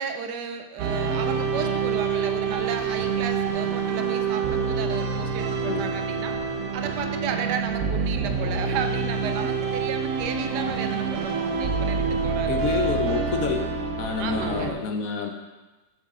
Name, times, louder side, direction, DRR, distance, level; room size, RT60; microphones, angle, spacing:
voice 1, 0.0-6.4 6.7-12.7 14.2-14.7, right 6 dB, 80° right, 7 dB, 1.2 m, -33 dB
sound 1, 0.8-14.7, right 5 dB, 60° right, 1.1 m, -27 dB
voice 2, 12.5-13.7 14.0-15.3, left 6 dB, 65° left, 4 dB, 1.1 m, -28 dB
7.4 x 6.4 x 3.7 m, 1.2 s
omnidirectional pair, 1.8 m